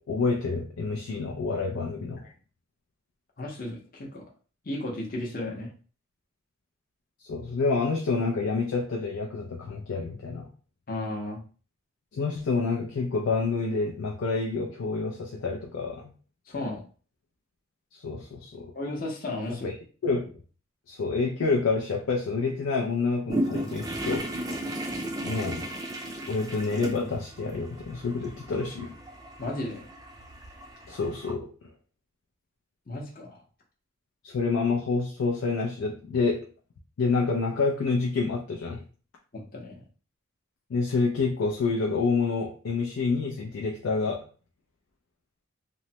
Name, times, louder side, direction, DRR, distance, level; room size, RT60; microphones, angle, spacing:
voice 1, 0.1-2.2 7.2-10.5 12.1-16.1 17.9-18.7 19.5-19.7 20.0-20.3 20.9-24.2 25.2-25.7 26.3-28.9 30.9-31.5 34.2-36.5 37.0-38.8 40.7-44.2, left 4 dB, 75° left, 0 dB, 0.4 m, -28 dB
voice 2, 3.4-4.3 4.6-5.7 10.9-11.4 16.5-16.8 18.7-19.7 29.4-29.8 32.9-33.4 39.3-39.8, left 1 dB, 40° left, -1 dB, 0.7 m, -34 dB
sound 1, 23.3-31.3, right 1 dB, 15° right, 0.3 m, -35 dB
3.1 x 2.0 x 2.7 m, 0.39 s
head